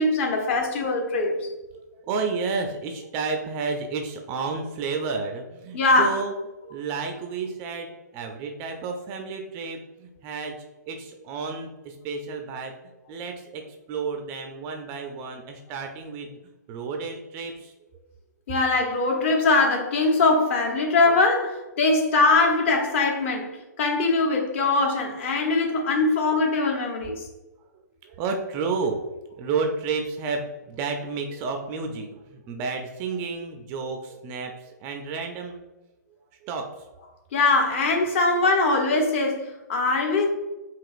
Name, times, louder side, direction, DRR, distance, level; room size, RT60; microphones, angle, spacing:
voice 1, 0.0-1.5 5.7-6.2 18.5-27.2 37.3-40.3, left 3 dB, 40° left, 0.9 m, -22 dB
voice 2, 1.7-6.3 6.6-10.6 10.9-12.7 13.1-16.4 16.7-17.7 25.6-25.7 28.0-35.7 36.4-36.9, right 4 dB, 25° right, 0.4 m, -31 dB
4.9 x 2.9 x 2.4 m
hypercardioid pair, 135°, 10 cm